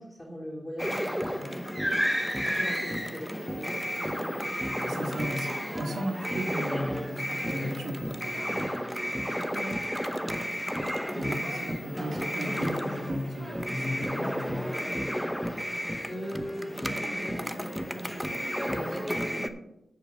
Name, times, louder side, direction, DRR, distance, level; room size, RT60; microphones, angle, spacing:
voice 1, 0.0-1.6 2.4-3.9 9.5-9.9 15.3-15.6 16.1-19.6, equal, 20° left, -4 dB, 3.2 m, -41 dB
sound 1, 0.8-19.5, equal, ahead, 0.9 m, -32 dB
voice 2, 4.8-8.8 10.8-10.9 11.1-14.7, equal, 75° right, 2 dB, 2.1 m, -35 dB
10.0 x 5.2 x 6.6 m, 0.86 s
cardioid pair, 50°, 0 cm